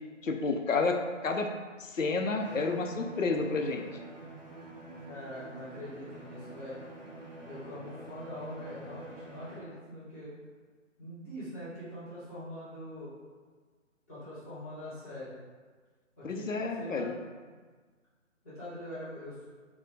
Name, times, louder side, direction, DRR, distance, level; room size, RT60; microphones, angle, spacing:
voice 1, 0.2-1.0 1.2-1.5 1.8-3.9 16.2-17.1, left 4 dB, 75° left, 4 dB, 0.6 m, -30 dB
Bowed string instrument, 2.4-9.8, right 1 dB, 35° right, 0.9 m, -46 dB
voice 2, 5.1-6.8 7.4-10.3 11.0-13.1 14.1-15.3 16.2-16.5 16.7-17.2 18.4-19.4, equal, 10° left, -13 dB, 1.0 m, -43 dB
4.5 x 2.2 x 3.9 m, 1.5 s
figure-of-eight pair, 150°, 39 cm